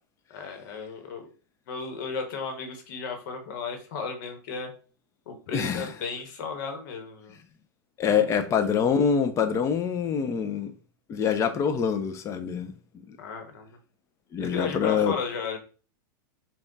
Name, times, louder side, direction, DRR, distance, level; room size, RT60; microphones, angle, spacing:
voice 1, 0.3-1.3 1.7-4.7 5.3-7.4 8.1-8.2 13.2-13.8 14.4-15.6, left 5 dB, 65° left, 1.1 m, -34 dB
voice 2, 5.5-5.9 8.0-10.7 11.1-12.7 13.1-13.2 14.3-15.1, left 7 dB, 25° left, 0.5 m, -25 dB
3.6 x 2.3 x 3.8 m
hypercardioid pair, 125°, 12 cm